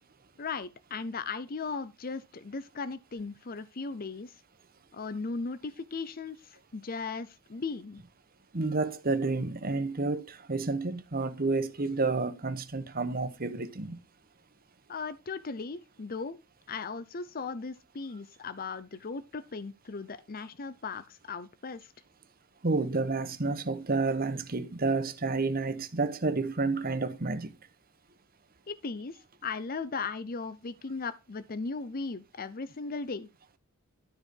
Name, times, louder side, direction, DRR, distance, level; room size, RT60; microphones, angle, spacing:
voice 1, 0.4-4.3 4.9-8.0 14.9-16.4 16.7-21.9 28.7-33.3, left 4 dB, 45° left, 0.7 m, -37 dB
voice 2, 8.5-14.0 22.6-27.5, right 3 dB, 45° right, 1.1 m, -30 dB
12.5 x 4.6 x 5.3 m
head